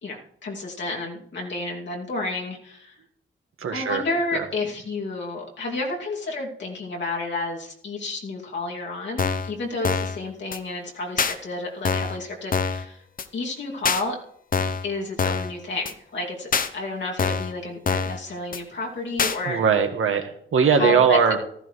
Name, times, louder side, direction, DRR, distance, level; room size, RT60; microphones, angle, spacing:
voice 1, 0.0-2.9 3.7-13.0 13.3-14.2 14.8-19.6 20.6-21.2, left 2 dB, 60° left, -2 dB, 2.7 m, -31 dB
voice 2, 3.6-4.0 4.3-4.5 19.5-21.4, right 6 dB, 85° right, 5 dB, 1.6 m, -20 dB
sound 1, 9.2-9.5 9.8-10.2 10.5-10.6 11.2-11.3 11.9-12.2 12.5-12.8 13.2-13.3 13.9-14.0 14.5-14.9 15.2-15.5 15.9-16.0 16.5-16.7 17.2-17.5 17.9-18.2 18.5-18.6 19.2-19.4, left 5 dB, 45° left, 0.8 m, -24 dB
15.0 x 14.0 x 3.3 m, 0.66 s
wide cardioid pair, 160°, 21 cm